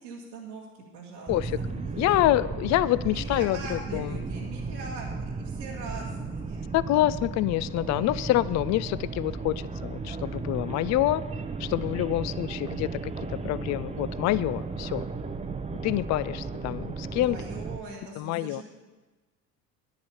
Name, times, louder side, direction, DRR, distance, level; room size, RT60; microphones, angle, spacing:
voice 1, 0.0-2.2 3.0-6.7 17.2-18.6, right 3 dB, 85° right, -6 dB, 1.9 m, -42 dB
voice 2, 1.3-1.6 2.0-4.2 6.7-11.2 11.6-15.1 15.8-17.4 18.2-18.6, left 15 dB, 35° left, 18 dB, 0.4 m, -27 dB
sound 1, 1.3-17.8, right 4 dB, 15° right, 0.6 m, -35 dB
10.5 x 10.5 x 5.5 m, 1.2 s
hypercardioid pair, 65°, 48 cm